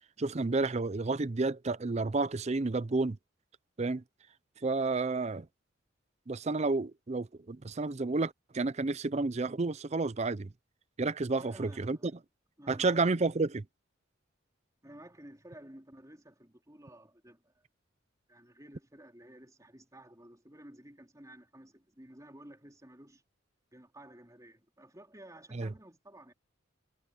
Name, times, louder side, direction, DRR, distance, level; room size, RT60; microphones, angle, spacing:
voice 1, 0.2-3.2 3.8-4.0 4.6-5.5 6.3-10.5 11.0-12.1 12.7-13.6 25.5-25.7, right 3 dB, 35° right, 0.5 m, -31 dB
voice 2, 11.4-12.1 12.6-13.0 14.8-17.6 18.3-23.2 23.7-26.3, right 1 dB, 15° right, 4.0 m, -53 dB
head